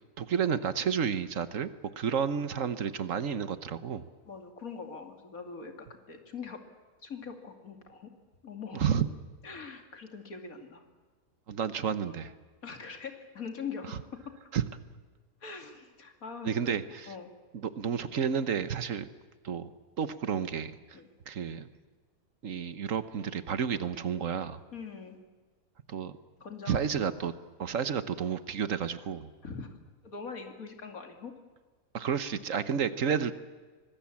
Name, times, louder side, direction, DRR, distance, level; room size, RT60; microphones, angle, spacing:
voice 1, 0.2-1.7 2.0-4.1 8.7-9.1 11.5-12.3 13.9-14.0 14.5-14.6 16.4-17.1 17.5-19.1 19.4-19.7 20.0-20.8 21.3-21.7 22.4-24.6 25.9-26.1 26.7-27.3 27.6-29.3 31.9-33.3, right 7 dB, 65° right, 13 dB, 1.4 m, -31 dB
voice 2, 4.2-6.6 7.0-8.1 8.4-8.8 9.4-10.8 12.6-14.3 15.4-17.3 19.0-19.1 20.9-21.1 24.7-25.2 26.4-27.1 29.4-29.8 30.0-31.3, left 5 dB, 80° left, 5 dB, 3.0 m, -42 dB
24.5 x 20.0 x 8.6 m, 1.4 s
omnidirectional pair, 1.5 m